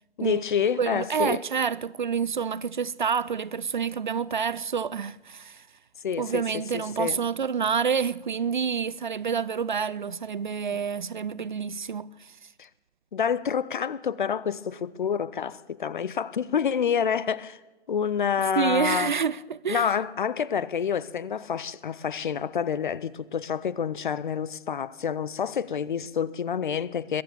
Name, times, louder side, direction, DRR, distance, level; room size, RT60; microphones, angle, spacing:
voice 1, 0.2-1.4 6.0-6.4 6.7-7.2 12.6-12.7 13.1-17.6 17.9-19.1 19.7-27.2, left 7 dB, 45° left, 0.6 m, -28 dB
voice 2, 0.8-5.6 6.2-12.1 18.6-19.9, right 6 dB, 45° right, 0.4 m, -28 dB
21.5 x 9.0 x 7.0 m
figure-of-eight pair, 130°, 34 cm